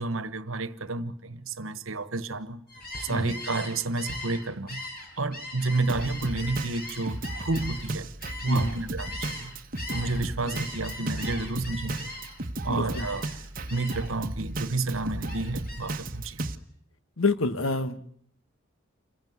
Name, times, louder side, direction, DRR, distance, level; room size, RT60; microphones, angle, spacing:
voice 1, 0.0-2.6 3.0-4.8 5.2-8.1 8.4-9.5 9.9-12.1 12.6-13.3 13.7-16.5, right 3 dB, 75° right, 1.4 m, -30 dB
Gull seagull, 2.7-9.5 9.7-12.5 12.9-13.4 13.7-14.1 14.5-16.0, left 2 dB, 45° left, 7.7 m, -40 dB
Drum kit, 5.9-16.5, right 2 dB, 40° right, 1.2 m, -35 dB
voice 2, 12.7-13.1 17.2-18.1, left 2 dB, 75° left, 1.4 m, -28 dB
28.0 x 15.5 x 9.6 m
head